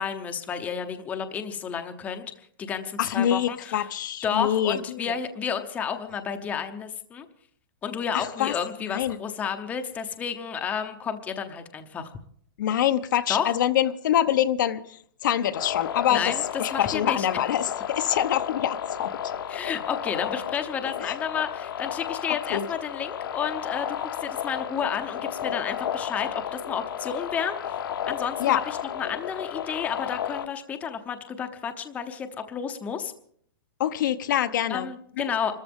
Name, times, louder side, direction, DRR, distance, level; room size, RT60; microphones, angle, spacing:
voice 1, 0.0-2.3 2.6-3.9 4.2-7.3 7.8-12.1 13.3-13.5 16.1-17.4 19.5-27.6 28.1-33.1 34.7-35.5, left 7 dB, 10° left, 0.8 m, -31 dB
voice 2, 3.0-5.1 8.1-8.6 8.9-9.2 12.6-16.3 16.6-19.1 21.0-21.1 22.5-22.7 28.4-28.6 33.8-34.9, left 11 dB, 60° left, 0.8 m, -25 dB
sound 1, 15.5-30.5, left 9 dB, 80° left, 1.4 m, -33 dB
26.0 x 13.5 x 3.6 m
hypercardioid pair, 165°, 12 cm